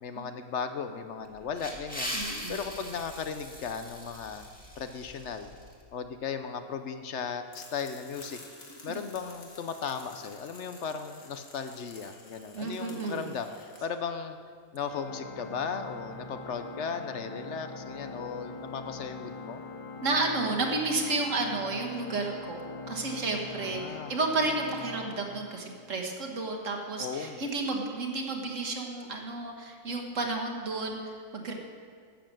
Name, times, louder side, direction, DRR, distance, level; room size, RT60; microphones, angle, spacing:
voice 1, 0.0-2.1 2.5-4.5 4.8-5.5 5.9-8.4 8.8-14.4 14.7-19.6 23.5-24.1 27.0-27.4, left 6 dB, 65° left, 8 dB, 0.9 m, -36 dB
sound 1, 1.2-5.8, equal, 5° left, 1.9 m, -40 dB
voice 2, 2.1-2.6 8.7-9.0 12.5-13.3 20.0-31.5, right 3 dB, 70° right, 2 dB, 1.8 m, -32 dB
sound 2, 7.5-13.8, left 2 dB, 80° left, 2.1 m, -51 dB
Organ, 14.8-26.0, left 3 dB, 30° left, 0.7 m, -42 dB
11.5 x 7.7 x 7.4 m, 2.1 s
omnidirectional pair, 1.4 m